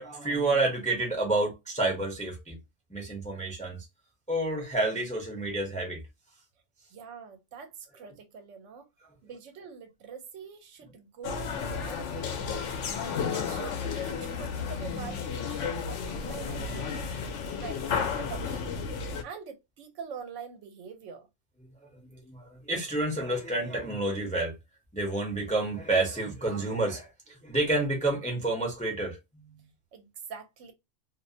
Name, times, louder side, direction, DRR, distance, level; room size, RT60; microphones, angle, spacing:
voice 1, 0.0-2.6 2.9-3.8 4.3-6.0 15.6-15.8 22.3-24.5 24.9-29.6, right 2 dB, 10° left, 0.5 m, -29 dB
voice 2, 6.9-8.9 9.2-12.7 13.3-21.3 29.9-30.7, right 6 dB, 80° right, 1.0 m, -44 dB
sound 1, 11.2-19.2, left 6 dB, 75° left, 0.9 m, -33 dB
2.5 x 2.1 x 2.5 m
omnidirectional pair, 1.2 m